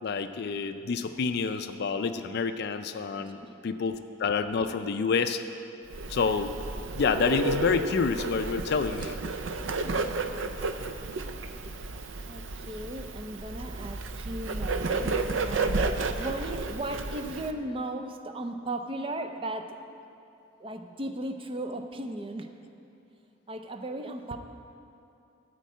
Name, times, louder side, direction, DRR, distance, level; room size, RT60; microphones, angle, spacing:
voice 1, 0.0-5.4 6.1-6.5 7.0-9.2, left 5 dB, 55° left, 9 dB, 0.4 m, -28 dB
voice 2, 3.2-3.5 9.7-10.5 12.3-19.8 20.6-22.5 23.5-24.4, right 1 dB, 25° right, 7 dB, 0.5 m, -37 dB
Bird, 5.9-17.5, right 3 dB, 70° right, 0.5 m, -32 dB
13.5 x 4.6 x 8.3 m, 2.7 s
head